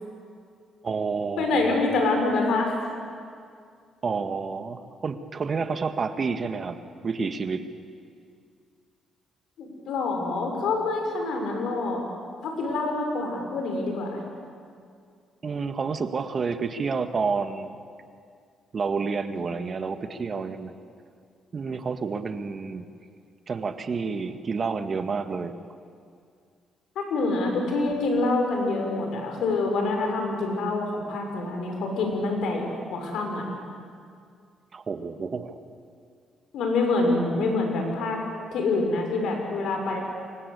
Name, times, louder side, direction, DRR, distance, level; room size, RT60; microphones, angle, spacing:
voice 1, 0.8-2.0 4.0-6.8 7.0-7.7 15.4-17.8 18.7-20.7 21.5-22.9 23.5-25.5 34.7-35.6, right 5 dB, 40° right, 9 dB, 1.7 m, -29 dB
voice 2, 1.4-2.8 9.6-12.0 12.4-14.2 26.9-33.4 36.5-38.2 38.5-40.0, left 3 dB, 75° left, 2 dB, 6.3 m, -26 dB
28.5 x 24.0 x 8.4 m, 2.3 s
cardioid pair, 90°, 0 cm